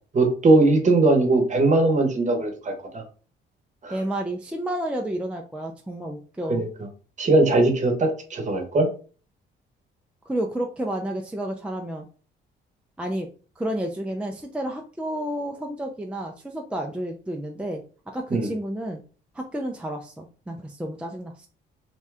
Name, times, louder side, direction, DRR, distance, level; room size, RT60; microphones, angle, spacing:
voice 1, 0.1-3.0 3.8-3.9 6.5-6.7 7.2-8.9 18.3-18.5, right 2 dB, 40° right, 4 dB, 1.0 m, -20 dB
voice 2, 3.9-6.6 10.3-12.1 13.0-13.3 13.6-17.8 18.1-19.0 19.3-21.5, right 1 dB, 5° right, 2 dB, 0.4 m, -31 dB
2.7 x 2.3 x 3.3 m, 0.38 s
cardioid pair, 90°, 20 cm